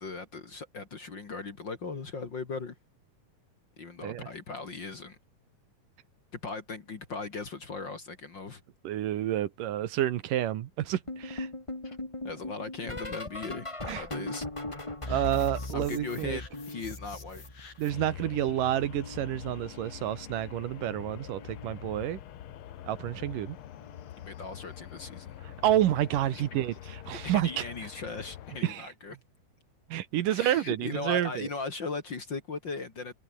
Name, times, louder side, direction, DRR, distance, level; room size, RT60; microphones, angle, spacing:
voice 1, 0.0-2.8 3.8-5.2 6.3-8.6 11.8-12.0 12.2-14.5 15.7-17.4 24.2-25.3 26.3-26.6 27.2-29.2 30.3-33.1, left 4 dB, 35° left, 2.4 m, -38 dB
voice 2, 8.8-11.5 13.9-14.0 15.1-16.4 17.8-22.2 22.9-23.6 25.4-27.7 28.6-28.9 29.9-31.5, right 12 dB, 75° right, 2.7 m, -29 dB
sound 1, 11.1-17.8 18.1-19.7 20.7-21.1 21.3-21.7 23.2-23.5 23.8-24.1 25.6-25.7, left 2 dB, 10° left, 1.6 m, -39 dB
sound 2, 15.0-18.1, left 5 dB, 55° left, 6.1 m, -52 dB
sound 3, 17.9-28.6, left 11 dB, 80° left, 1.2 m, -45 dB
omnidirectional pair, 4.0 m